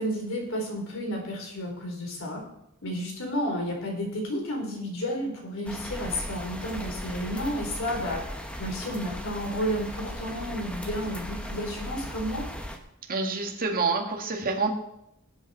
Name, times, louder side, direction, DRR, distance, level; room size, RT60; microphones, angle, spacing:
voice 1, 0.0-2.4 2.8-8.3 8.6-12.5, equal, 65° left, 1 dB, 3.9 m, -31 dB
sound 1, 5.6-12.8, equal, 5° left, 1.3 m, -37 dB
voice 2, 13.1-14.7, right 4 dB, 45° right, 2 dB, 2.0 m, -27 dB
19.0 x 8.1 x 4.3 m, 0.80 s
head